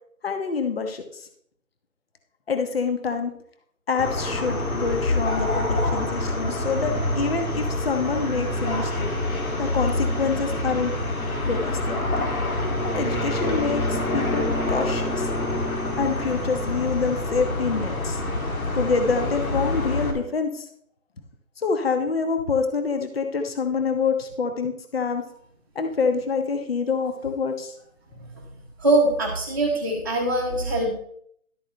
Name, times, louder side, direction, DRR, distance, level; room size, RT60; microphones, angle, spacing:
voice 1, 0.2-1.0 2.5-3.3 3.9-9.1 9.6-10.9 11.4-12.3 12.8-15.3 16.0-18.2 18.7-20.6 21.6-25.2 25.7-27.7, left 5 dB, 45° left, 6 dB, 1.2 m, -26 dB
sound 1, 4.0-20.1, left 1 dB, 80° left, 2.6 m, -26 dB
voice 2, 28.8-30.9, right 2 dB, 15° right, -6 dB, 1.0 m, -22 dB
12.0 x 8.4 x 3.2 m, 0.67 s
hypercardioid pair, 175°, 42 cm